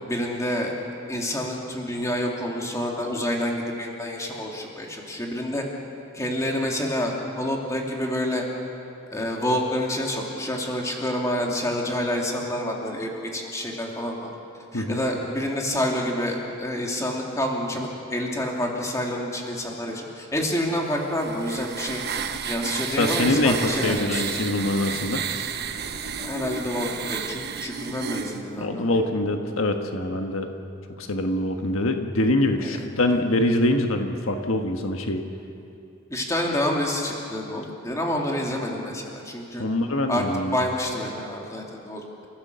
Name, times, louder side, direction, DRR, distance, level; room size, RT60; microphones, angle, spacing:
voice 1, 0.1-0.7 1.1-5.6 6.1-8.4 9.1-14.3 14.7-22.0 22.5-24.4 26.2-28.9 32.6-32.8 36.1-39.6 40.1-40.2 40.5-42.3, left 1 dB, 15° left, -1 dB, 2.8 m, -28 dB
sound 1, 20.9-28.4, right 7 dB, 50° right, 1.0 m, -32 dB
voice 2, 23.0-25.2 28.6-30.5 31.0-35.2 39.6-40.6, left 1 dB, 80° left, 4 dB, 1.5 m, -24 dB
29.5 x 15.0 x 6.9 m, 2.7 s
head